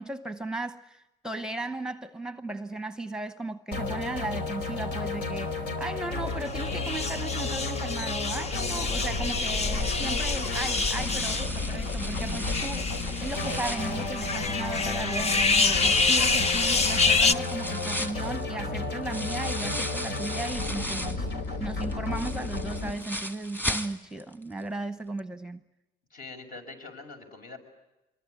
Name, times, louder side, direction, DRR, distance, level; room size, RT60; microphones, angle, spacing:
voice 1, 0.0-12.9 13.2-21.3 21.6-25.6, right 2 dB, 5° right, 0.9 m, -36 dB
sound 1, 3.7-22.9, left 3 dB, 85° left, 4.1 m, -33 dB
sound 2, 6.5-17.3, left 4 dB, 40° left, 1.1 m, -27 dB
sound 3, 9.5-14.8 15.3-21.3 21.7-24.3 24.6-24.7 25.2-25.3, equal, 10° left, 1.7 m, -37 dB
voice 2, 26.1-27.6, left 3 dB, 55° left, 6.4 m, -43 dB
25.5 x 22.5 x 9.6 m
cardioid pair, 110°, 17 cm